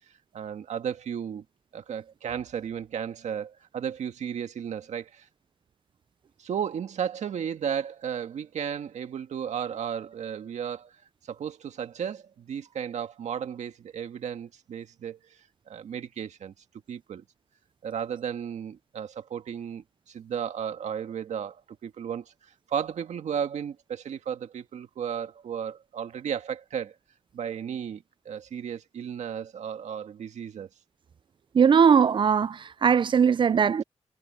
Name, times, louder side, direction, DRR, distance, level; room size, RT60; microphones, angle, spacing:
voice 1, 0.3-1.4 1.7-5.3 6.4-10.9 11.2-15.4 15.7-16.5 16.9-17.2 17.8-22.3 22.7-27.0 27.3-30.7, right 8 dB, 85° right, 1.7 m, -34 dB
voice 2, 31.6-33.8, right 7 dB, 45° right, 0.4 m, -20 dB
cardioid pair, 50°, 12 cm